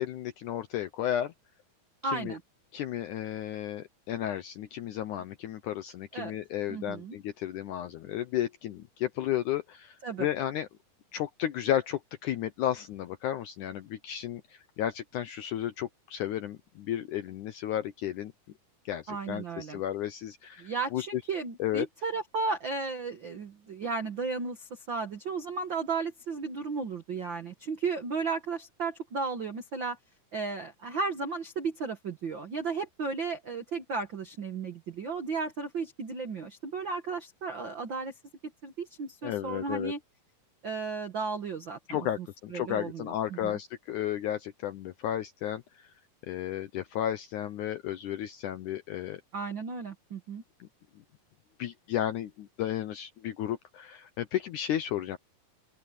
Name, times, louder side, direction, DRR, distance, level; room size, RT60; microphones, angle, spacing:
voice 1, 0.0-1.3 2.0-2.3 2.7-10.7 11.1-18.3 18.9-21.1 21.6-21.9 39.2-39.9 41.9-45.9 46.3-49.2 50.6-50.7 51.6-55.2, left 11 dB, 75° left, 1.8 m, -33 dB
voice 2, 2.0-2.4 6.1-6.3 6.7-7.2 10.0-10.3 19.1-19.8 20.6-30.0 30.3-38.1 38.6-40.0 40.6-43.6 49.3-50.4, right 4 dB, 65° right, 1.1 m, -34 dB
open air
omnidirectional pair, 4.4 m